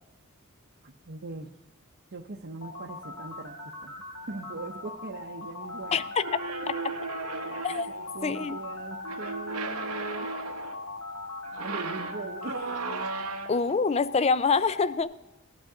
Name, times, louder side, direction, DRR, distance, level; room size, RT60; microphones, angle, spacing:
voice 1, 0.8-1.5 2.1-4.0 4.3-6.7 7.9-10.3 11.6-12.8, right 3 dB, 50° right, 0 dB, 0.7 m, -41 dB
sound 1, 2.6-13.2, left 2 dB, 70° left, 1.7 m, -42 dB
sound 2, 5.6-15.0, left 3 dB, 50° left, 1.1 m, -41 dB
voice 2, 5.9-6.4 7.6-7.9 8.2-8.6 13.5-15.1, left 5 dB, 30° left, 16 dB, 0.4 m, -25 dB
sound 3, 6.2-8.1 9.0-10.8 11.4-13.7, right 5 dB, 90° right, 0.9 m, -36 dB
18.0 x 11.5 x 3.8 m, 0.92 s
head